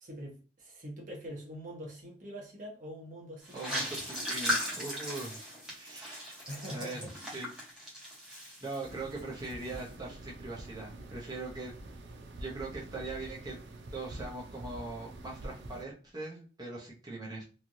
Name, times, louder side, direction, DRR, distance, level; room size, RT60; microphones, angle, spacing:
voice 1, 0.0-3.9 6.5-7.1, equal, 50° right, 0.9 m, -44 dB
sound 1, 3.4-9.2 9.4-9.8, equal, 5° right, 1.0 m, -37 dB
voice 2, 3.5-6.3 6.7-7.5 8.6-11.7 12.4-13.6 13.9-17.4, right 3 dB, 25° right, 0.8 m, -41 dB
sound 2, 8.8-15.8, right 1 dB, 85° right, 0.5 m, -46 dB
3.2 x 2.4 x 2.6 m
head